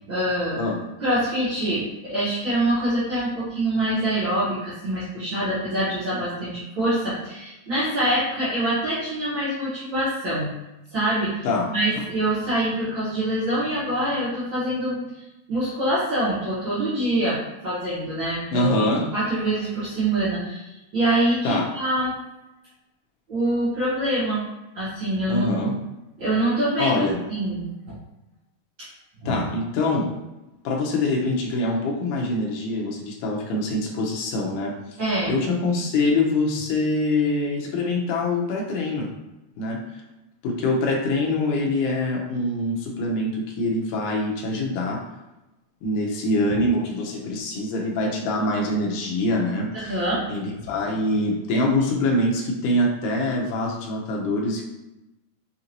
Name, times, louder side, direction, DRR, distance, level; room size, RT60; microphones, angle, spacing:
voice 1, 0.1-0.6 1.0-10.5 10.9-11.4 11.7-15.0 15.5-22.1 23.3-24.5 24.7-25.7 26.2-27.0 27.3-27.9 28.8-28.9 29.2-29.4 35.0-35.3 49.7-50.2, right 1 dB, 65° right, -12 dB, 1.1 m, -25 dB
voice 2, 18.5-19.1 21.4-21.7 25.3-25.7 26.8-27.2 29.3-30.1 30.6-34.8 35.3-39.1 39.6-39.9 40.4-45.0 45.8-50.0 50.3-54.6, left 2 dB, 75° left, -1 dB, 1.9 m, -24 dB
5.9 x 2.6 x 2.9 m, 0.98 s
omnidirectional pair, 4.4 m